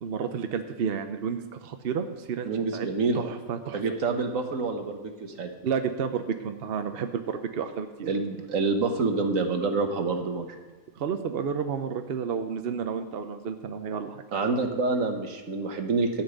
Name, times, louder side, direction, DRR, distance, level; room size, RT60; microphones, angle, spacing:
voice 1, 0.0-2.9 3.1-3.8 5.6-8.1 11.0-14.2, right 6 dB, 55° right, 7 dB, 0.8 m, -31 dB
voice 2, 2.4-3.2 3.7-5.5 8.0-10.5 14.3-16.2, right 3 dB, 70° right, 5 dB, 1.6 m, -27 dB
12.0 x 5.7 x 8.0 m, 1.3 s
omnidirectional pair, 1.5 m